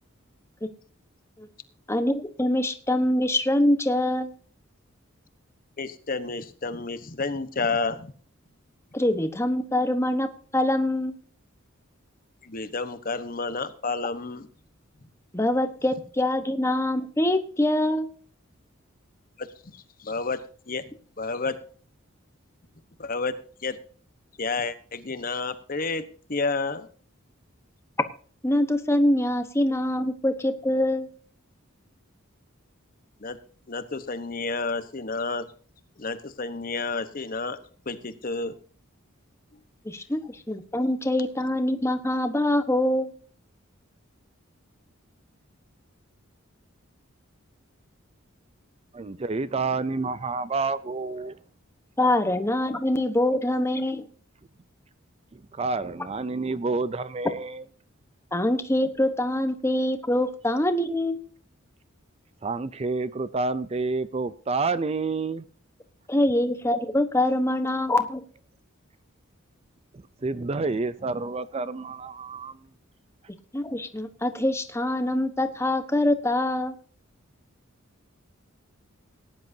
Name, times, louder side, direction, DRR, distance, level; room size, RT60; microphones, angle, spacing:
voice 1, 1.9-4.3 8.9-11.2 15.3-18.1 28.4-31.1 39.8-43.1 52.0-54.1 58.3-61.2 66.1-68.2 73.5-76.7, left 1 dB, 15° left, 1.1 m, -24 dB
voice 2, 5.8-8.1 12.4-14.5 19.4-19.5 19.7-20.4 20.7-20.8 21.2-21.6 23.0-23.3 23.6-23.8 24.4-26.9 33.2-33.4 33.7-35.5 36.0-37.6 37.9-38.5, left 3 dB, 45° left, 1.1 m, -30 dB
voice 3, 48.9-51.4 55.3-57.6 62.4-65.4 70.2-72.6, right 3 dB, 30° right, 0.4 m, -29 dB
18.5 x 10.5 x 2.7 m
head